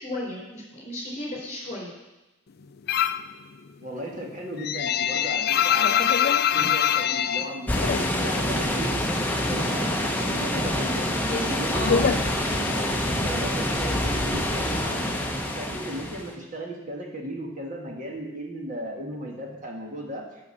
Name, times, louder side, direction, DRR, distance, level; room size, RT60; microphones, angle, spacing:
voice 1, 0.0-1.9 9.4-9.6 11.2-12.0 12.4-12.7, left 1 dB, 30° left, -3 dB, 4.2 m, -34 dB
sound 1, 2.9-3.3 3.7-8.5 8.8-9.9 10.1-13.0, left 9 dB, 50° left, 0.4 m, -24 dB
voice 2, 3.8-6.1 6.5-11.1 11.4-12.1 12.8-12.9 13.2-15.1 15.6-20.3, right 1 dB, 35° right, -1 dB, 1.9 m, -36 dB
sound 2, 7.7-16.3, left 1 dB, 10° left, 0.9 m, -26 dB
9.5 x 6.4 x 7.1 m, 1.0 s
head